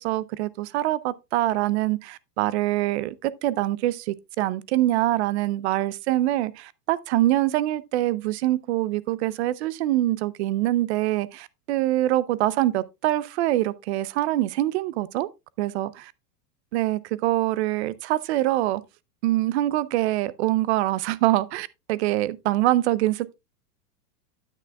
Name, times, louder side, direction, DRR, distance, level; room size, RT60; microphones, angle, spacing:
voice 1, 0.0-15.3 15.6-16.0 16.7-18.8 19.2-23.4, right 15 dB, 45° right, 0.5 m, -24 dB
9.7 x 8.4 x 2.3 m
supercardioid pair, 150°, 48 cm